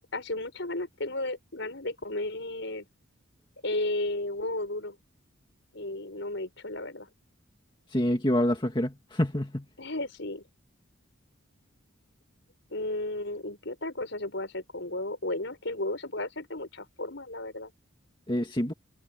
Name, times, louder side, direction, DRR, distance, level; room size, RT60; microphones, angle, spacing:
voice 1, 0.1-2.9 3.6-5.0 5.7-7.1 9.8-10.4 12.7-17.7, left 2 dB, 60° left, 5.9 m, -34 dB
voice 2, 7.9-9.6 18.3-18.7, left 1 dB, 25° left, 2.1 m, -27 dB
head